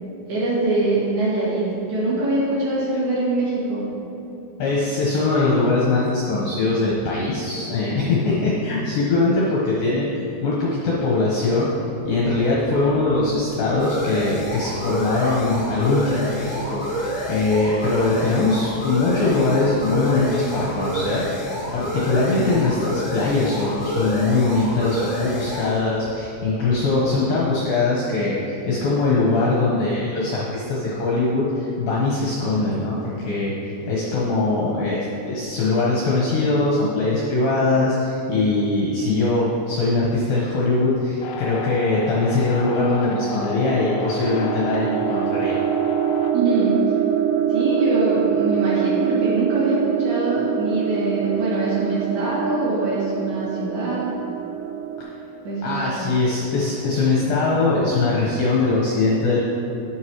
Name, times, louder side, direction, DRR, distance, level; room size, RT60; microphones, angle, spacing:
voice 1, 0.3-3.9 46.3-46.9 47.5-54.2 55.4-56.1, right 2 dB, 55° right, -9 dB, 3.8 m, -23 dB
voice 2, 4.6-10.1 10.4-11.7 12.0-21.4 21.7-33.0 33.2-45.6 55.0-55.1 55.6-59.5, left 3 dB, 70° left, -6 dB, 2.3 m, -21 dB
sound 1, 12.1-27.3, equal, 40° left, 1.3 m, -30 dB
sound 2, 41.2-46.3, left 6 dB, 85° left, 2.4 m, -33 dB
sound 3, 43.2-55.0, right 10 dB, 90° right, 3.2 m, -24 dB
9.9 x 9.6 x 3.1 m, 2.9 s
omnidirectional pair, 5.5 m